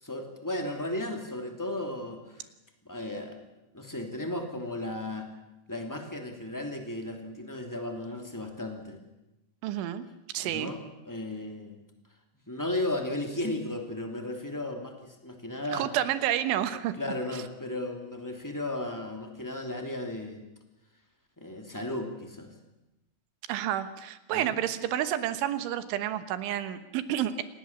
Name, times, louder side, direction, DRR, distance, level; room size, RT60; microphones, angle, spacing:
voice 1, 0.0-2.5 2.8-3.4 3.7-5.3 5.7-9.0 10.4-11.8 12.5-15.9 17.0-20.4 21.4-22.5 24.3-24.6, left 1 dB, 10° left, 3 dB, 1.2 m, -35 dB
voice 2, 9.6-10.1 10.3-10.7 15.7-16.9 17.3-17.4 23.5-27.4, right 11 dB, 85° right, 11 dB, 3.6 m, -30 dB
27.0 x 19.0 x 7.3 m, 0.98 s
omnidirectional pair, 5.3 m